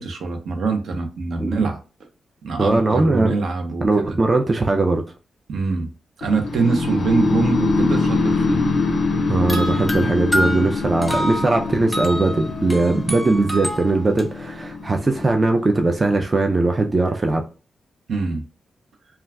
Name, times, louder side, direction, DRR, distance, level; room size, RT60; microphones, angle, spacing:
voice 1, 0.0-1.8 2.4-4.2 5.5-5.9 6.2-8.6 18.1-18.4, right 4 dB, 70° right, 0.7 m, -23 dB
voice 2, 2.6-3.3 3.8-5.0 9.3-17.4, right 2 dB, 30° right, 0.3 m, -20 dB
sound 1, 6.2-16.2, left 3 dB, 65° left, 0.4 m, -24 dB
sound 2, 9.5-14.2, equal, 10° left, 0.7 m, -28 dB
2.2 x 2.2 x 3.4 m
cardioid pair, 90°, 0 cm